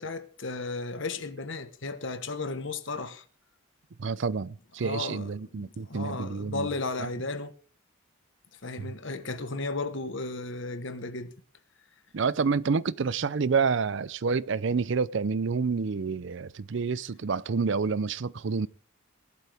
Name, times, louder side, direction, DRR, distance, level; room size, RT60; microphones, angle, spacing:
voice 1, 0.0-3.2 4.8-7.5 8.6-11.3, left 3 dB, 65° left, 1.3 m, -34 dB
voice 2, 4.0-6.7 7.0-7.1 8.8-8.9 12.1-18.7, right 5 dB, 60° right, 0.5 m, -28 dB
18.0 x 12.0 x 3.5 m
head